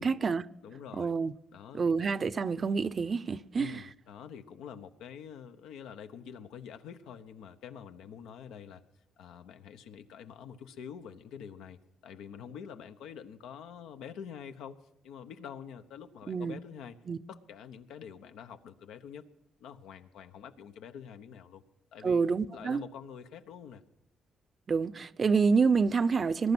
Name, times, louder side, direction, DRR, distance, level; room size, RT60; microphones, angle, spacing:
voice 1, 0.0-0.4 0.9-1.3 1.7-3.8 16.3-16.6 17.1-17.2 22.0-22.8 24.7-26.5, right 5 dB, 40° right, 0.6 m, -27 dB
voice 2, 0.6-1.1 1.5-2.1 3.6-8.8 9.2-14.8 15.0-17.0 17.3-19.3 19.6-21.6 21.9-22.2 22.5-23.8, left 8 dB, 85° left, 1.1 m, -46 dB
20.5 x 11.0 x 6.1 m
cardioid pair, 90°, 0 cm